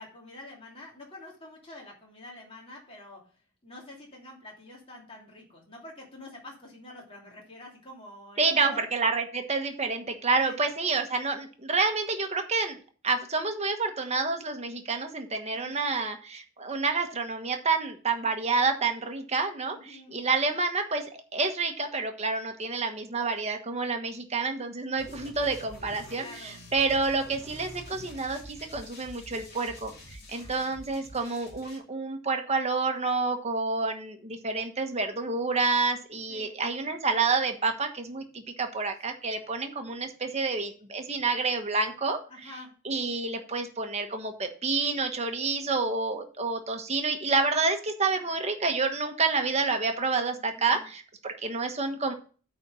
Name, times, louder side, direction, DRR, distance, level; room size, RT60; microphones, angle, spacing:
voice 1, 0.0-8.8 10.4-10.6 15.5-15.7 19.7-20.1 26.2-26.6 30.3-30.9 36.3-36.6 42.3-42.7 50.3-50.9, left 2 dB, 25° left, -3 dB, 2.9 m, -47 dB
voice 2, 8.4-12.8 13.0-42.2 42.8-52.1, right 4 dB, 30° right, 5 dB, 1.3 m, -29 dB
sound 1, 25.0-31.8, equal, 50° left, 2.6 m, -47 dB
9.1 x 4.3 x 6.9 m, 0.39 s
head